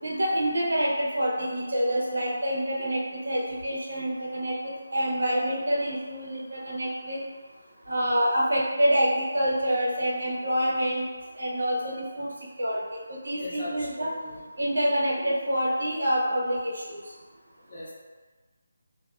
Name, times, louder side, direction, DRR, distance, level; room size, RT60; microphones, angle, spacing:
voice 1, 0.0-7.2 7.9-11.0 11.4-12.3 12.6-12.8 13.1-14.1 14.6-17.0, equal, 75° right, -4 dB, 0.7 m, -27 dB
voice 2, 13.4-14.4 17.7-17.9, left 1 dB, 30° left, -9 dB, 0.6 m, -38 dB
2.3 x 2.3 x 2.3 m, 1.4 s
figure-of-eight pair, 180°, 0 cm